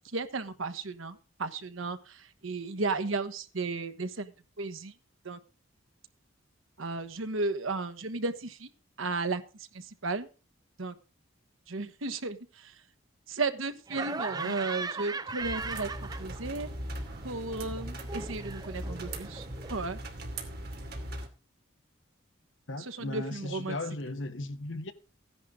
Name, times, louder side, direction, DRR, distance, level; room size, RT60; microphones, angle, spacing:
voice 1, 0.1-4.9 5.2-5.4 6.8-8.7 9.0-10.3 10.8-10.9 11.7-12.8 13.3-15.9 16.2-16.7 17.2-20.0 22.8-23.8, right 3 dB, 85° right, 1.2 m, -34 dB
Laughter, 13.9-16.7 16.9-19.8, right 4 dB, 20° right, 0.5 m, -39 dB
sound 1, 15.4-21.3, right 1 dB, 50° right, 2.5 m, -39 dB
voice 2, 22.7-24.9, left 2 dB, 70° left, 1.2 m, -37 dB
15.0 x 10.5 x 3.7 m
head